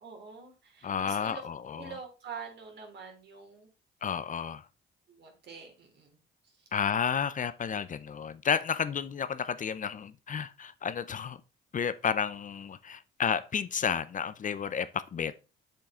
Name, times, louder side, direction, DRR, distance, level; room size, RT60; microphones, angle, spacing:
voice 1, 0.0-1.4 1.8-3.7 5.1-6.2, right 5 dB, 60° right, 3.3 m, -45 dB
voice 2, 0.8-2.0 4.0-4.7 6.7-11.4 11.7-15.3, left 7 dB, 40° left, 0.6 m, -31 dB
7.6 x 7.3 x 3.7 m
cardioid pair, 90°, 20 cm